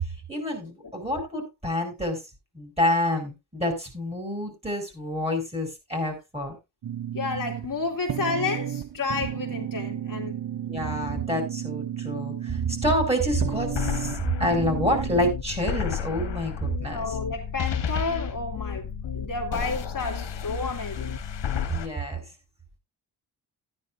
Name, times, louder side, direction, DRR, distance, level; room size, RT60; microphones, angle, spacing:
voice 1, 0.3-2.2 2.5-6.6 10.7-17.0 21.7-22.2, equal, 15° right, 5.0 m, -28 dB
sound 1, 6.8-15.3, right 10 dB, 60° right, 0.8 m, -33 dB
voice 2, 7.1-10.4 16.8-21.2, left 3 dB, 50° left, 2.3 m, -31 dB
sound 2, 13.2-21.9, left 7 dB, 85° left, 1.5 m, -32 dB
14.0 x 9.8 x 2.5 m
wide cardioid pair, 100°, 42 cm